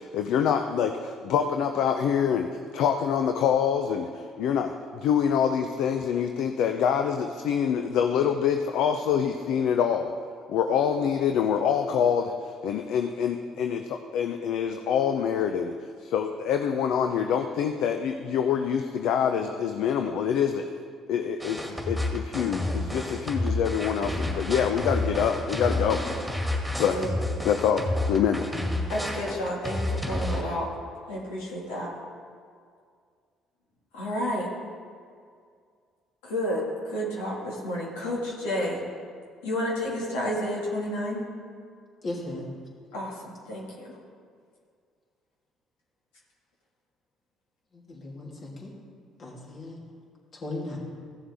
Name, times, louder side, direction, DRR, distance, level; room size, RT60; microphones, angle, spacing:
voice 1, 0.0-2.5 2.7-10.1 10.5-15.7 16.0-20.7 21.1-26.0 26.8-27.0 27.4-28.5, left 8 dB, 70° left, 6 dB, 0.5 m, -26 dB
sound 1, 21.4-30.4, left 1 dB, ahead, 2.2 m, -30 dB
voice 2, 28.9-30.7 31.0-31.9 33.9-34.5 36.2-38.8 39.4-41.2 42.9-43.9, equal, 85° left, -4 dB, 2.0 m, -31 dB
voice 3, 42.0-42.5 47.9-48.7 49.2-49.8 50.4-50.8, left 2 dB, 50° left, -4 dB, 2.9 m, -36 dB
15.5 x 7.2 x 3.5 m, 2.2 s
hypercardioid pair, 65°, 0 cm